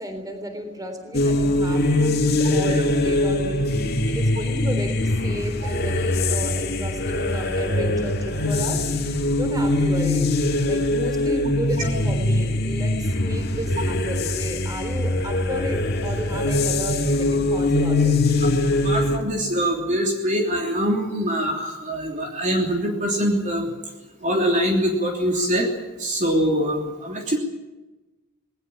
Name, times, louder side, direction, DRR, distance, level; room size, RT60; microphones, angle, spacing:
voice 1, 0.0-8.9 9.3-10.3 10.6-18.2, equal, 20° right, 7 dB, 3.6 m, -33 dB
sound 1, 1.1-19.2, left 2 dB, 50° left, 2.3 m, -22 dB
voice 2, 18.8-23.7 24.2-25.7 26.0-27.4, equal, 35° right, 1 dB, 3.2 m, -23 dB
20.5 x 18.5 x 8.7 m, 1.1 s
head